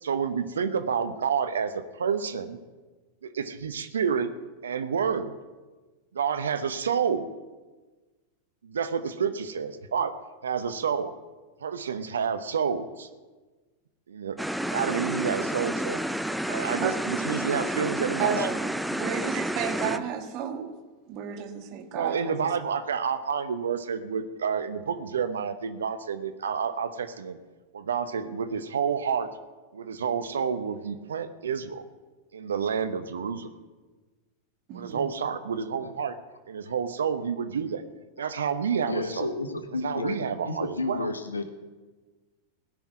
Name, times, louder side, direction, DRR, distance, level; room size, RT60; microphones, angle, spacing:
voice 1, 0.0-2.6 3.2-4.3 4.6-5.3 6.1-7.3 8.6-10.1 10.4-11.1 11.6-13.1 14.1-14.4 14.7-16.0 16.5-18.5 19.8-20.0 21.9-27.4 27.7-29.3 29.7-31.8 32.3-33.5 34.7-36.2 36.5-37.8 38.2-39.3 39.8-41.1, right 6 dB, 80° right, 11 dB, 0.9 m, -29 dB
sound 1, 14.4-20.0, right 1 dB, ahead, 0.5 m, -30 dB
voice 2, 18.2-20.8 21.1-22.5 34.7-35.1, right 7 dB, 45° right, 7 dB, 1.6 m, -33 dB
voice 3, 38.9-41.5, left 3 dB, 90° left, 9 dB, 1.2 m, -32 dB
17.0 x 5.8 x 9.5 m, 1.3 s
hypercardioid pair, 95°, 0 cm